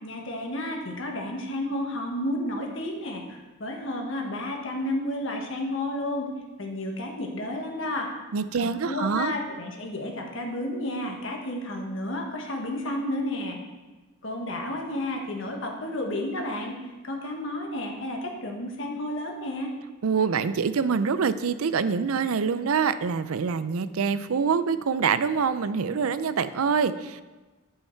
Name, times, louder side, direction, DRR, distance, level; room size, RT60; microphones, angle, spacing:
voice 1, 0.0-6.3 6.6-8.1 8.6-13.6 14.2-16.7 17.0-19.7, left 1 dB, 60° left, 1 dB, 1.4 m, -31 dB
voice 2, 8.3-9.3 20.0-27.2, right 6 dB, 80° right, 13 dB, 0.5 m, -25 dB
9.9 x 5.7 x 4.5 m, 1.2 s
head